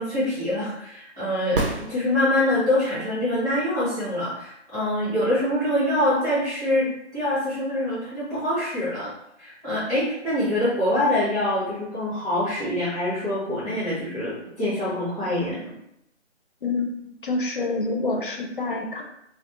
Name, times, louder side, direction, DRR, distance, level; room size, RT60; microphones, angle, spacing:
voice 1, 0.0-9.1 9.4-15.7, left 1 dB, 5° right, -12 dB, 0.6 m, -25 dB
sound 1, 1.5-2.7 6.6-6.7, right 2 dB, 50° right, 0.6 m, -29 dB
voice 2, 17.2-19.0, left 3 dB, 50° left, 2 dB, 0.4 m, -27 dB
2.2 x 2.1 x 2.8 m, 0.78 s
figure-of-eight pair, 155°, 36 cm